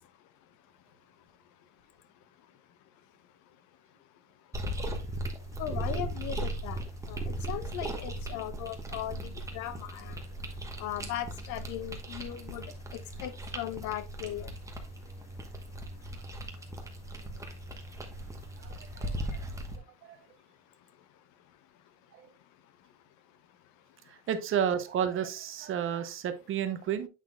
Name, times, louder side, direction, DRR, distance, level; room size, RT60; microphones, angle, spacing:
sound 1, 4.5-19.8, right 1 dB, 10° right, 1.1 m, -38 dB
voice 1, 5.6-6.8 7.1-7.2 7.5-10.2 10.8-12.7 13.2-14.5, left 12 dB, 50° left, 0.7 m, -38 dB
voice 2, 18.6-19.4 20.1-20.2 22.2-22.3 24.1-27.1, right 8 dB, 35° right, 0.7 m, -32 dB
8.2 x 5.8 x 2.3 m
supercardioid pair, 120°, 37 cm